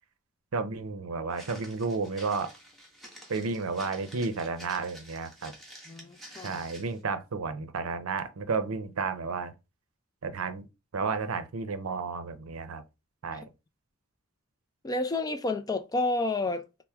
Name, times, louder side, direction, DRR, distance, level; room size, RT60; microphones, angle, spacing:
voice 1, 0.5-2.5 3.3-5.5 6.4-9.5 10.2-10.6 10.9-12.8 13.2-13.5, right 4 dB, 90° right, 0.6 m, -32 dB
Walk footsteps, 1.3-7.0, equal, ahead, 1.1 m, -49 dB
voice 2, 5.9-6.6 14.8-16.7, left 2 dB, 20° left, 0.3 m, -30 dB
4.3 x 2.1 x 3.4 m
head